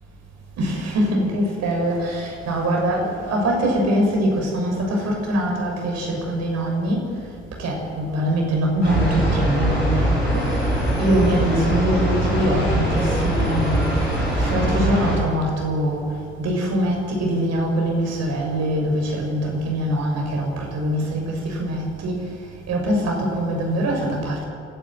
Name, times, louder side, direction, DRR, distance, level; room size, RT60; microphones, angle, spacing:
voice 1, 0.6-7.1 7.6-10.4 11.0-13.8 14.4-16.0 16.4-22.2 22.7-24.4, right 1 dB, 55° right, 0 dB, 6.7 m, -23 dB
sound 1, 8.8-15.2, right 1 dB, 85° left, 6.9 m, -22 dB
29.0 x 12.5 x 9.4 m, 2.6 s
figure-of-eight pair, 45°, 31 cm